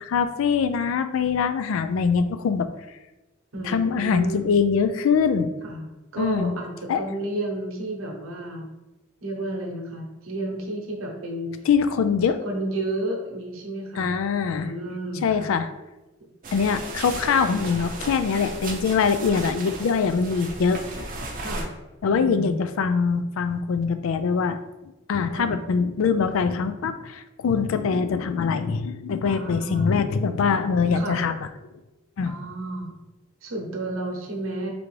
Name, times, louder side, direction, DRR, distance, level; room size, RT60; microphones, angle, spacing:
voice 1, 0.0-2.7 3.6-5.5 6.2-6.5 6.9-7.0 11.7-12.4 14.0-14.7 15.2-15.7 16.5-20.8 22.0-24.6 25.1-31.5 32.2-32.3, left 5 dB, 80° left, 10 dB, 0.3 m, -23 dB
voice 2, 3.5-4.6 5.6-8.7 9.2-11.6 12.4-14.1 14.4-15.5 21.4-21.7 22.0-22.6 25.3-25.5 29.2-29.9 30.9-31.2 32.3-32.9 33.4-34.7, right 1 dB, 90° right, 1 dB, 0.9 m, -32 dB
sound 1, 16.4-21.6, right 2 dB, 40° right, 0.6 m, -35 dB
3.8 x 3.3 x 3.2 m, 1.0 s
head